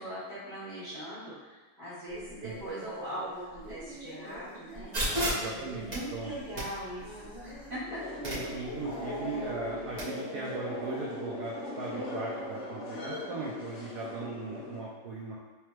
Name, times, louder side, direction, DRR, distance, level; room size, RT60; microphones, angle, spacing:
voice 1, 0.0-4.9 5.7-8.0, right 1 dB, 55° right, -13 dB, 2.1 m, -40 dB
sound 1, 2.1-9.5, equal, 25° left, 0.8 m, -47 dB
sound 2, 4.9-10.0, equal, 30° right, 0.8 m, -37 dB
voice 2, 5.3-6.4 8.2-15.4, right 3 dB, 85° right, -4 dB, 0.8 m, -38 dB
sound 3, 7.9-14.8, left 1 dB, 60° left, 0.7 m, -39 dB
3.3 x 3.3 x 3.1 m, 1.2 s
omnidirectional pair, 2.3 m